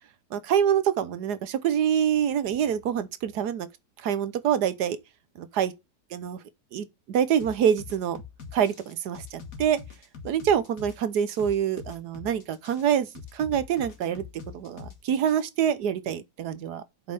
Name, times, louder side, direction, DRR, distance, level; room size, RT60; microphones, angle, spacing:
voice 1, 0.3-3.7 4.0-5.0 5.4-5.7 6.1-6.4 6.7-8.2 8.5-9.8 10.2-14.2 14.5-17.1, right 9 dB, 75° right, 1.4 m, -26 dB
sound 1, 7.4-15.4, left 6 dB, 55° left, 2.1 m, -43 dB
7.8 x 5.5 x 5.3 m
omnidirectional pair, 1.7 m